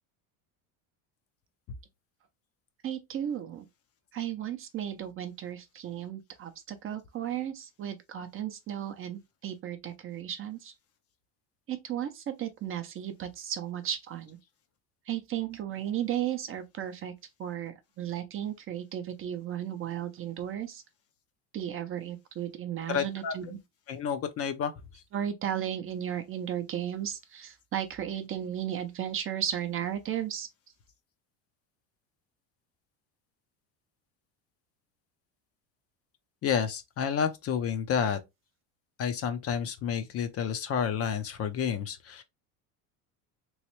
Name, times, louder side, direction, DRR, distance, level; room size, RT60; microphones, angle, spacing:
voice 1, 2.8-3.7 4.1-10.7 11.7-14.4 15.1-17.1 17.4-20.8 21.5-23.6 25.1-30.5, right 10 dB, 30° right, 0.5 m, -35 dB
voice 2, 22.9-23.6 23.9-25.0 36.4-38.2 39.0-42.2, left 7 dB, 35° left, 0.5 m, -30 dB
3.1 x 3.0 x 2.9 m
supercardioid pair, 125°, 41 cm